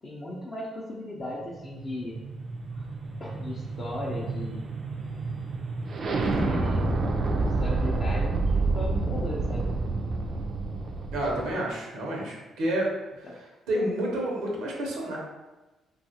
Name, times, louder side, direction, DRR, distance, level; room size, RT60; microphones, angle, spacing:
voice 1, 0.0-2.2 2.7-2.9 3.2-4.6 6.3-6.9 7.3-9.7 13.2-13.4, left 1 dB, 40° left, -4 dB, 0.5 m, -37 dB
sound 1, 1.3-11.5, right 3 dB, 50° right, 0.4 m, -29 dB
voice 2, 11.1-12.9 13.7-15.2, right 1 dB, 90° right, -2 dB, 0.8 m, -29 dB
3.0 x 2.3 x 2.8 m, 1.1 s
cardioid pair, 90°, 0 cm